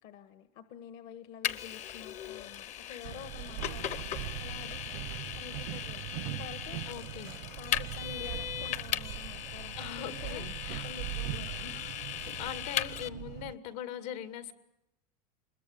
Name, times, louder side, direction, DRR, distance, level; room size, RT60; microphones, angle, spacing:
voice 1, 0.0-6.9 7.6-10.5 10.8-11.8, left 8 dB, 55° left, 10 dB, 1.5 m, -48 dB
Vehicle, 1.4-13.1, left 11 dB, 35° left, 0.9 m, -38 dB
sound 1, 3.0-13.5, right 19 dB, 70° right, 0.9 m, -41 dB
voice 2, 6.9-7.3 9.8-10.9 11.3-11.4 12.4-14.5, left 10 dB, 75° left, 10 dB, 2.6 m, -41 dB
25.5 x 21.5 x 9.1 m, 0.86 s
supercardioid pair, 150°, 21 cm